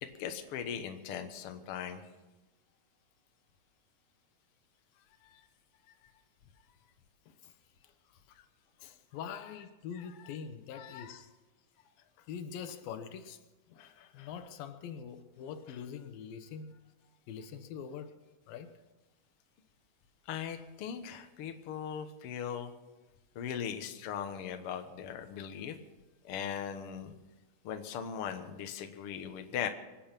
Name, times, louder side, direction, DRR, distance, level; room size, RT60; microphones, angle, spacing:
voice 1, 0.0-2.0 5.2-5.4 10.0-10.1 10.7-11.2 20.3-22.7 23.3-25.8 26.2-27.1 27.6-29.7, left 8 dB, 60° left, 1.6 m, -39 dB
voice 2, 8.8-11.3 12.2-13.4 13.7-16.8 17.3-18.2 18.5-18.7, left 7 dB, 90° left, 2.9 m, -44 dB
25.0 x 9.0 x 5.9 m
omnidirectional pair, 4.0 m